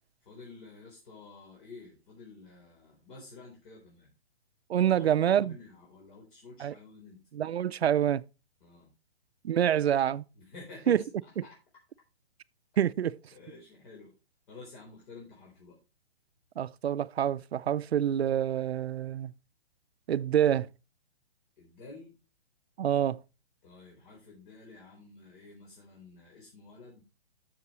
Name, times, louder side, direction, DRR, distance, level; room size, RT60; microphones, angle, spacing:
voice 1, 0.2-4.1 4.9-7.2 8.6-8.9 10.3-11.6 13.3-14.1 14.5-15.8 21.6-22.2 23.6-27.0, left 3 dB, 50° left, 4.1 m, -50 dB
voice 2, 4.7-5.5 6.6-6.7 7.3-8.2 9.4-10.2 10.9-11.0 12.8-13.2 16.6-19.3 20.1-20.7 22.8-23.2, right 10 dB, 80° right, 0.6 m, -26 dB
12.0 x 7.0 x 3.1 m
hypercardioid pair, 135°, 31 cm